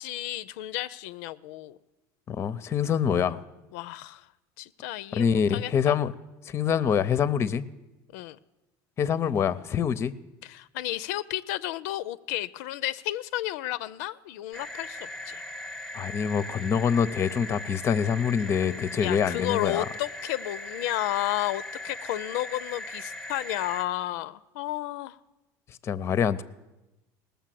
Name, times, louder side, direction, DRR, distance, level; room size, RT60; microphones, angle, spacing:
voice 1, 0.0-1.8 3.7-4.3 4.6-6.0 8.1-8.4 10.4-15.4 19.0-25.2, left 15 dB, 90° left, 15 dB, 0.4 m, -32 dB
voice 2, 2.3-3.4 5.1-6.1 6.5-7.6 9.0-10.1 15.9-19.9 25.8-26.4, left 7 dB, 30° left, 16 dB, 0.5 m, -25 dB
sound 1, 14.5-23.8, left 1 dB, 5° left, 0.9 m, -39 dB
18.5 x 6.9 x 7.6 m, 1.0 s
cardioid pair, 135°, 9 cm